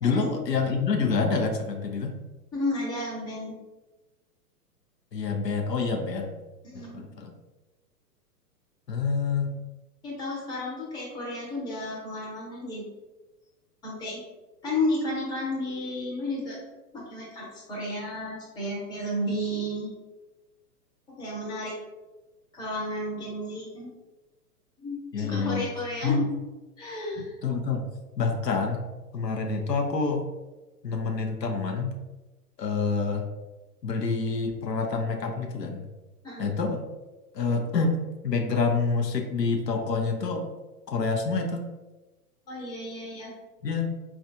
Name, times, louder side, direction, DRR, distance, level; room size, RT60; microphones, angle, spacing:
voice 1, 0.0-2.2 5.1-6.4 6.7-7.3 8.9-9.5 25.1-25.7 26.0-26.2 27.4-27.9 28.2-28.9 29.1-30.3 30.8-31.9 32.6-33.2 33.8-35.9 36.4-36.8 37.3-40.5 40.9-41.7 43.6-43.9, left 4 dB, 85° left, 3 dB, 0.7 m, -27 dB
voice 2, 2.5-3.6 6.6-7.0 10.0-12.9 13.8-14.2 14.6-16.6 16.9-19.9 21.1-21.8 22.5-23.9 24.8-26.2 26.8-27.3 36.2-36.5 42.5-43.4, left 1 dB, 10° left, -5 dB, 0.6 m, -32 dB
4.4 x 2.4 x 2.5 m, 1.1 s
figure-of-eight pair, 110°, 48 cm